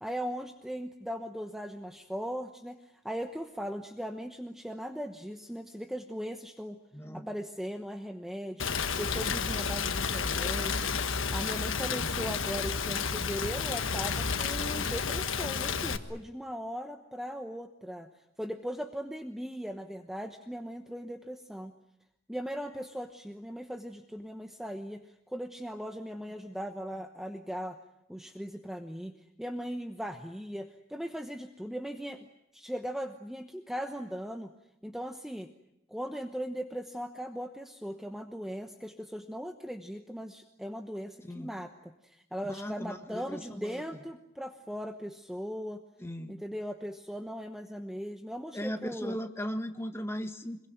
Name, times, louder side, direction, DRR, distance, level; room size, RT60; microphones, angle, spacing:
voice 1, 0.0-6.8 7.1-8.6 9.0-10.9 11.3-18.1 18.4-21.7 22.3-27.8 28.1-29.1 29.4-32.3 32.5-34.5 34.8-35.5 35.9-45.8 46.3-49.2, equal, ahead, 6 dB, 1.0 m, -38 dB
voice 2, 6.9-7.3 11.9-12.1 41.2-41.5 42.5-43.8 46.0-46.3 48.5-50.7, equal, 15° left, 6 dB, 1.7 m, -37 dB
Rain, 8.6-16.0, left 5 dB, 90° left, 1.4 m, -31 dB
25.5 x 22.5 x 9.3 m, 0.81 s
head